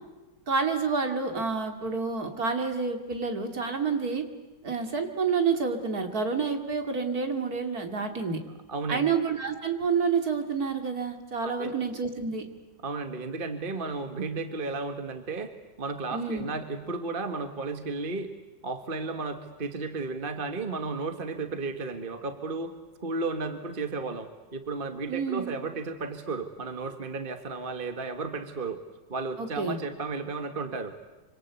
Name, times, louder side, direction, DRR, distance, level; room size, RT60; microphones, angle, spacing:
voice 1, 0.5-4.2 4.6-8.4 8.9-12.5 16.1-16.5 25.1-25.5 29.4-29.8, right 5 dB, 55° right, 6 dB, 3.0 m, -28 dB
voice 2, 8.7-9.0 11.4-11.7 12.8-15.5 15.8-18.3 18.6-28.8 29.1-30.9, right 3 dB, 30° right, 7 dB, 1.7 m, -33 dB
26.0 x 25.5 x 8.2 m, 1.2 s
omnidirectional pair, 1.9 m